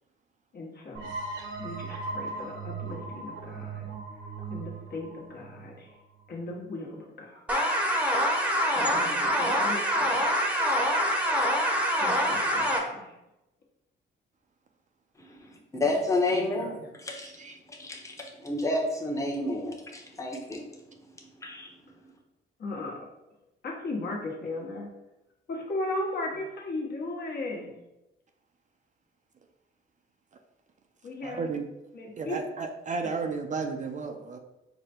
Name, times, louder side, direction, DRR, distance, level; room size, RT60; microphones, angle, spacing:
voice 1, 0.5-1.1 1.6-3.9 4.5-5.9 6.3-7.5 8.8-10.2 12.0-13.1 16.3-16.9 22.6-23.0 23.6-24.9 25.5-27.8 31.0-31.5 31.9-32.4, left 2 dB, 55° left, -1 dB, 1.2 m, -37 dB
sound 1, 0.9-6.4, right 4 dB, 80° right, 1.0 m, -38 dB
sound 2, 7.5-12.8, equal, 5° right, 0.8 m, -25 dB
voice 2, 15.2-17.3 17.7-20.7 21.2-21.7, left 2 dB, 15° left, 0 dB, 0.9 m, -30 dB
voice 3, 17.2-17.6 31.2-31.7 32.2-34.4, right 4 dB, 40° right, 5 dB, 0.4 m, -33 dB
4.8 x 2.2 x 4.4 m, 0.94 s
cardioid pair, 90°, 20 cm